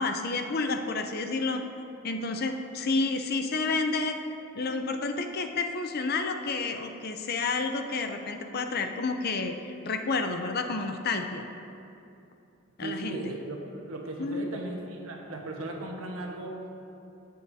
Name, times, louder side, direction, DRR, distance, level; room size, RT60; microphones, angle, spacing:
voice 1, 0.0-1.6 2.0-4.2 4.5-9.5 9.8-11.5 12.8-13.2 14.2-14.5, left 3 dB, 45° left, 6 dB, 0.5 m, -30 dB
voice 2, 12.8-16.6, right 2 dB, 75° right, 1 dB, 1.2 m, -37 dB
16.0 x 6.4 x 2.7 m, 2.8 s
head